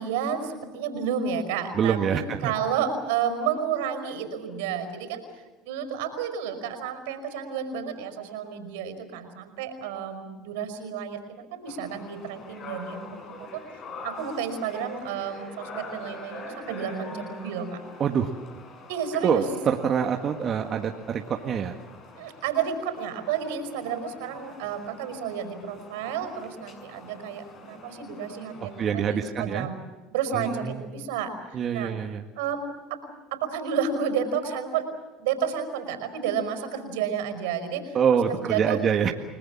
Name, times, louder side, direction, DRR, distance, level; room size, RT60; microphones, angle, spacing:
voice 1, 0.0-5.2 5.6-13.6 14.0-17.8 18.9-19.4 22.2-29.8 30.1-31.9 32.4-33.0 33.3-34.9 35.2-38.0 38.3-38.8, right 7 dB, 85° right, 8 dB, 5.3 m, -31 dB
voice 2, 1.7-2.5 18.0-18.3 19.2-21.8 28.6-29.7 30.3-30.8 31.5-32.2 37.9-39.1, right 7 dB, 40° right, 3 dB, 1.8 m, -25 dB
sound 1, 11.7-28.9, left 2 dB, 50° left, 6.6 m, -45 dB
29.5 x 20.0 x 7.4 m, 1.2 s
supercardioid pair, 95°, 0 cm